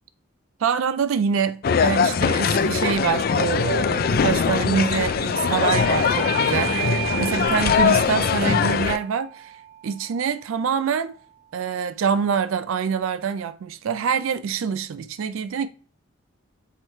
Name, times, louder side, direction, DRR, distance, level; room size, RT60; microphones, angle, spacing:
voice 1, 0.6-9.5 9.8-11.2 11.5-15.7, right 6 dB, 85° right, 0.4 m, -25 dB
sound 1, 1.6-9.0, left 6 dB, 45° left, 0.4 m, -21 dB
Bell / Doorbell, 5.6-10.8, right 15 dB, 20° right, 0.7 m, -34 dB
8.1 x 3.2 x 4.2 m
head